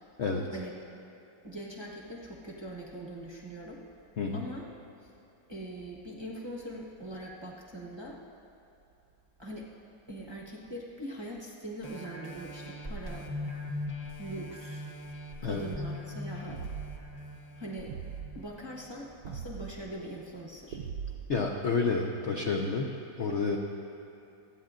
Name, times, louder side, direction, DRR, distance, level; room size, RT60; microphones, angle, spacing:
voice 1, 1.4-3.8 4.3-4.7 5.0-5.1 5.5-8.2 9.4-9.7 10.1-13.3 14.2-14.9 15.4-16.7 17.6-17.9 18.3-20.8, right 1 dB, 20° right, -4 dB, 0.7 m, -42 dB
voice 2, 4.2-4.5 15.4-15.6 21.3-23.6, left 4 dB, 70° left, 1 dB, 0.6 m, -30 dB
sound 1, 11.8-19.0 19.5-19.6, left 1 dB, 25° left, 1.2 m, -41 dB
sound 2, 16.5-17.1 17.9-18.3 19.2-19.8 20.7-21.4, right 7 dB, 70° right, 1.1 m, -39 dB
28.0 x 9.4 x 2.5 m, 2.8 s
omnidirectional pair, 2.1 m